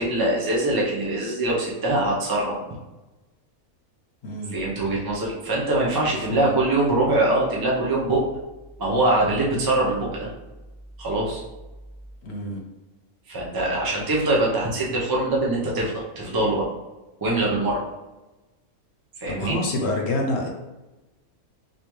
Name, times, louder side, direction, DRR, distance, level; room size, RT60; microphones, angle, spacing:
voice 1, 0.0-2.6 4.5-8.2 8.8-10.3 11.0-11.4 13.3-16.7 17.2-17.8 19.2-19.6, right 2 dB, 30° right, -4 dB, 0.4 m, -23 dB
voice 2, 4.2-4.5 6.3-6.5 12.2-12.6 19.2-20.5, left 2 dB, 55° left, 0 dB, 0.8 m, -27 dB
3.6 x 2.7 x 3.0 m, 1.1 s
omnidirectional pair, 1.5 m